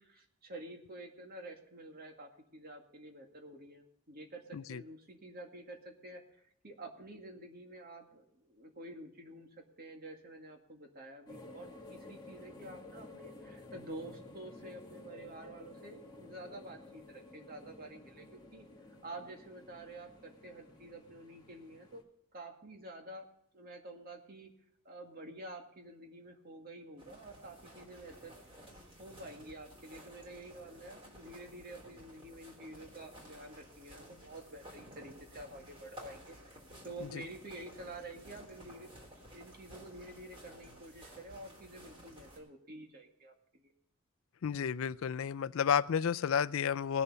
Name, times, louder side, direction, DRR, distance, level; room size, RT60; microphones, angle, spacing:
voice 1, 0.0-18.7 19.0-22.0 22.3-23.3 23.5-24.5 24.8-28.3 28.6-28.7 29.0-36.6 36.8-43.7, right 1 dB, 45° right, 2 dB, 2.1 m, -49 dB
sound 1, 11.3-22.0, left 2 dB, 20° left, 1.9 m, -53 dB
sound 2, 27.0-42.4, equal, 25° right, 3.5 m, -54 dB
voice 2, 44.4-47.0, left 7 dB, 70° left, 15 dB, 0.4 m, -31 dB
19.5 x 6.9 x 5.6 m, 0.73 s
head